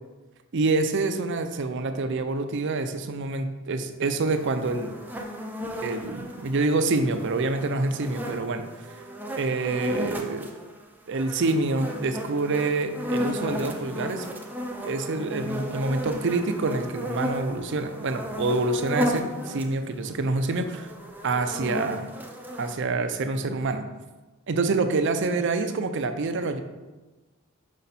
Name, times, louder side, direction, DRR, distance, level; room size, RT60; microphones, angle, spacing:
voice 1, 0.5-5.0 5.8-8.7 9.4-10.4 11.1-14.2 14.8-20.9 21.2-22.1 22.6-23.9 24.5-26.6, right 3 dB, 55° right, 8 dB, 0.5 m, -26 dB
sound 1, 4.3-10.8 11.1-19.7 20.1-22.8, equal, 10° right, 0.5 m, -34 dB
5.5 x 5.1 x 4.1 m, 1.2 s
head